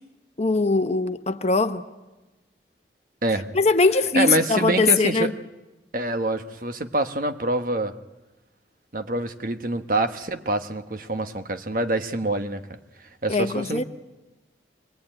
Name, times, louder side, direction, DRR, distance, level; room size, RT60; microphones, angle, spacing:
voice 1, 0.4-1.8 3.5-5.3 13.3-13.8, left 3 dB, 35° left, 9 dB, 1.0 m, -21 dB
voice 2, 4.1-5.3 5.9-7.9 8.9-12.8 13.2-13.8, right 2 dB, 50° right, 8 dB, 1.2 m, -26 dB
25.0 x 20.5 x 8.9 m, 1.1 s
head